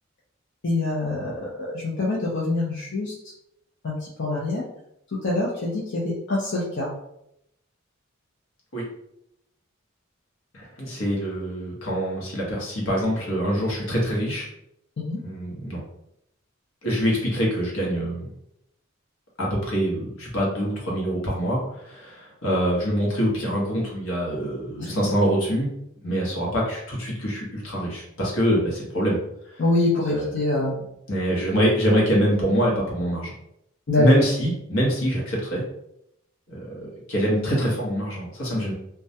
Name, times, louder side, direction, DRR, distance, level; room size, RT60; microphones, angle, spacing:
voice 1, 0.6-1.5 1.7-3.1 3.8-4.6 5.2-6.9 15.0-15.2 24.8-24.9 29.6-30.7 33.9-34.1, left 2 dB, 60° left, -6 dB, 0.5 m, -25 dB
voice 2, 10.5-14.5 15.2-15.8 16.8-18.3 19.4-25.7 26.0-29.2 29.5-29.6 30.1-30.3 31.1-33.3 34.0-35.6 36.5-38.7, equal, 80° left, -3 dB, 0.9 m, -24 dB
2.3 x 2.1 x 2.7 m, 0.78 s
head